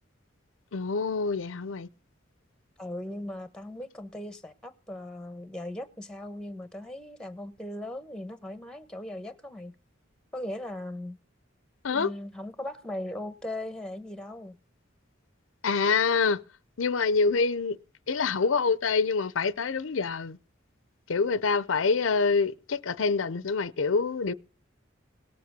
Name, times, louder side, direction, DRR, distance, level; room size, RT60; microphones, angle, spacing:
voice 1, 0.7-1.9 11.8-12.1 15.6-16.4 16.8-17.8 18.1-20.4 21.1-24.3, left 4 dB, 85° left, 0.6 m, -26 dB
voice 2, 2.8-9.7 10.3-11.2 11.9-14.6, left 1 dB, 5° left, 1.1 m, -38 dB
18.5 x 7.8 x 6.8 m
head